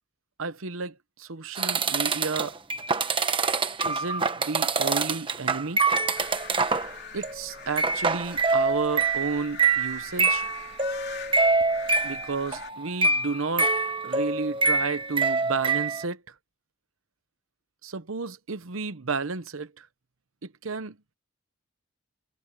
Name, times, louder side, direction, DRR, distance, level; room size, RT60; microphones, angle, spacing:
voice 1, 0.4-2.6 3.9-5.8 7.1-10.5 12.0-13.7 14.0-16.3 17.8-19.9 20.4-21.0, right 4 dB, 70° right, 0.9 m, -32 dB
sound 1, 1.6-6.9 7.2-7.5 7.8-16.0, right 4 dB, 25° right, 1.2 m, -25 dB
sound 2, 6.1-12.7, left 6 dB, 50° left, 3.8 m, -43 dB
head